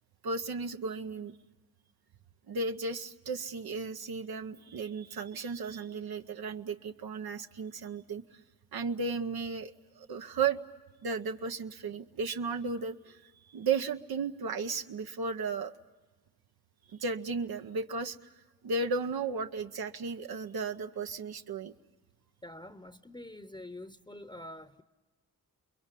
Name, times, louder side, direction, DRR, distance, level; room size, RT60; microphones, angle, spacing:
voice 1, 0.2-1.3 2.5-8.4 8.7-10.6 11.0-15.7 16.9-18.3 18.6-21.7, right 4 dB, 80° right, 0.9 m, -34 dB
voice 2, 22.4-24.8, left 1 dB, 10° left, 0.8 m, -46 dB
29.5 x 22.0 x 8.3 m
cardioid pair, 75°, 37 cm